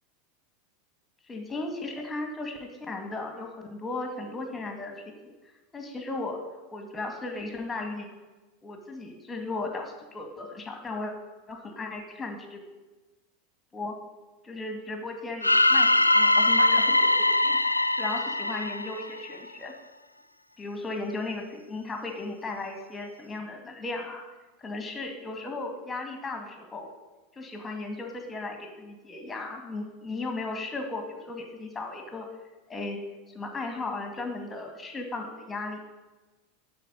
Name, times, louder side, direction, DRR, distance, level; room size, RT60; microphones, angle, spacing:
voice 1, 1.3-5.3 5.7-6.4 6.7-8.1 8.6-11.1 11.5-12.6 13.7-13.9 14.4-19.7 20.6-24.2 24.6-26.9 27.4-32.3 32.7-33.0 33.3-35.8, left 2 dB, 15° left, 3 dB, 2.2 m, -36 dB
sound 1, 15.4-19.5, left 2 dB, 85° left, 0.3 m, -22 dB
12.0 x 4.7 x 8.2 m, 1.2 s
figure-of-eight pair, 85°, 0 cm